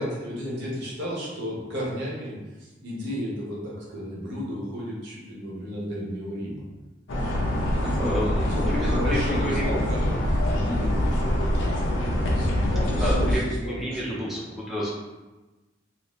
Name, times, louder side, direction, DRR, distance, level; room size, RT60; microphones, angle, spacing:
voice 1, 0.0-2.3 2.6-6.6 7.4-10.1 10.4-11.1 12.3-14.3, equal, 65° right, -5 dB, 1.0 m, -33 dB
sound 1, 7.1-13.4, left 1 dB, 85° left, 0.6 m, -24 dB
voice 2, 8.0-9.8 13.0-14.9, equal, ahead, -7 dB, 0.6 m, -30 dB
2.7 x 2.6 x 3.0 m, 1.1 s
head